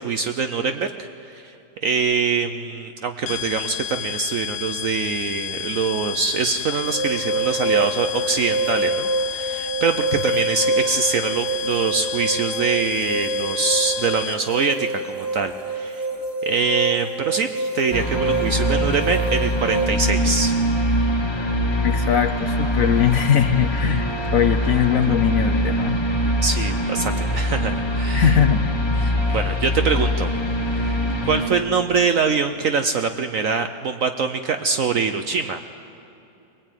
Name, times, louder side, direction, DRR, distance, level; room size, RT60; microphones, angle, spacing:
voice 1, 0.0-1.5 1.8-16.1 16.4-20.5 26.4-28.4 29.0-30.3 30.7-31.0 31.2-35.6, right 5 dB, 60° right, 8 dB, 0.9 m, -24 dB
sound 1, 3.3-14.7, left 12 dB, 90° left, 1.6 m, -31 dB
sound 2, 6.8-19.9, right 2 dB, 10° right, 1.6 m, -26 dB
sound 3, 17.9-31.5, equal, 15° left, 1.1 m, -23 dB
voice 2, 21.8-26.0 28.1-28.6, left 9 dB, 60° left, 9 dB, 1.0 m, -20 dB
22.5 x 19.5 x 9.1 m, 2.8 s
omnidirectional pair, 2.0 m